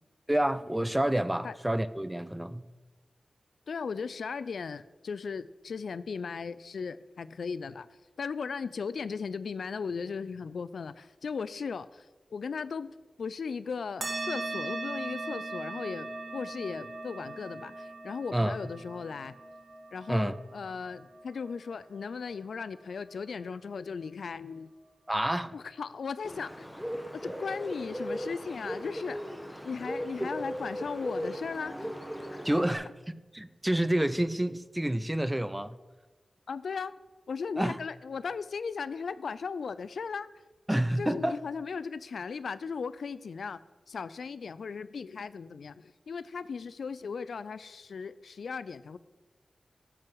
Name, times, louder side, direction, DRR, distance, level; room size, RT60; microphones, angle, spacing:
voice 1, 0.3-2.7 18.3-18.6 20.1-20.3 25.1-25.5 30.2-30.3 32.4-35.7 37.6-37.8 40.7-41.4, right 1 dB, 15° right, 0.5 m, -29 dB
voice 2, 3.7-7.9 8.2-12.1 12.3-12.9 13.2-19.4 19.9-24.7 25.5-26.7 27.2-29.2 29.6-31.9 32.3-32.4 36.5-36.9 37.3-40.3 40.7-43.6 43.9-49.0, left 5 dB, 85° left, 0.3 m, -37 dB
sound 1, 14.0-22.9, right 2 dB, 65° right, 1.6 m, -40 dB
Bird, 26.2-32.7, equal, 5° left, 1.4 m, -38 dB
12.0 x 4.6 x 7.7 m
cardioid pair, 45°, 0 cm